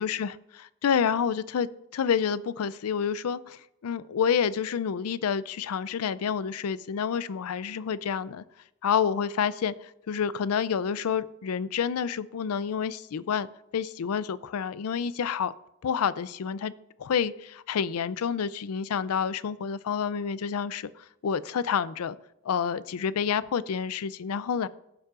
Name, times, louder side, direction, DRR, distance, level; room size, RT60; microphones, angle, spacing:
voice 1, 0.0-8.4 8.8-13.5 13.7-15.5 15.8-16.7 17.0-20.9 21.2-22.2 22.4-24.7, left 7 dB, 90° left, 0.4 m, -28 dB
16.0 x 7.2 x 2.5 m
head